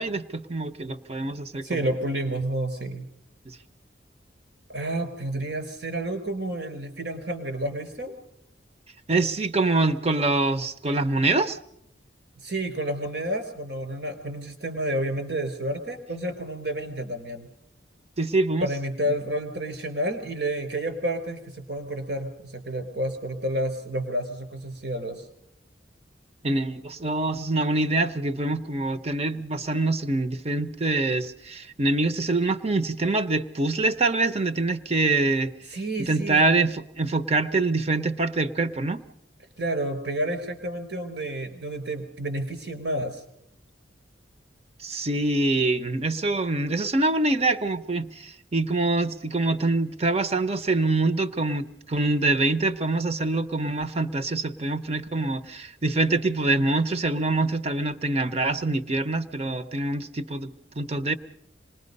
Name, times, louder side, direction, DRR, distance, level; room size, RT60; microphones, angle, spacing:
voice 1, 0.0-1.8 5.3-5.4 9.1-11.6 18.2-18.7 26.4-35.5 36.0-39.0 44.8-60.5 60.8-61.2, right 2 dB, 35° right, 10 dB, 0.9 m, -25 dB
voice 2, 1.6-3.1 4.7-8.2 12.4-17.5 18.6-25.3 35.7-36.4 39.6-43.2, right 1 dB, 70° right, 7 dB, 4.2 m, -30 dB
26.5 x 20.5 x 5.4 m, 0.76 s
head